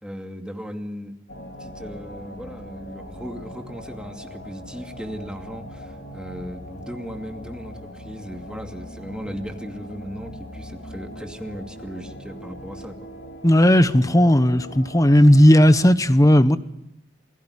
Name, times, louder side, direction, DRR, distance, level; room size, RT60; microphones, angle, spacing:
voice 1, 0.0-1.2 1.6-13.1, equal, 5° right, 2.5 m, -37 dB
sound 1, 1.3-15.9, equal, 70° left, 4.3 m, -40 dB
voice 2, 13.4-16.6, equal, 20° left, 1.1 m, -15 dB
28.0 x 18.5 x 10.0 m
head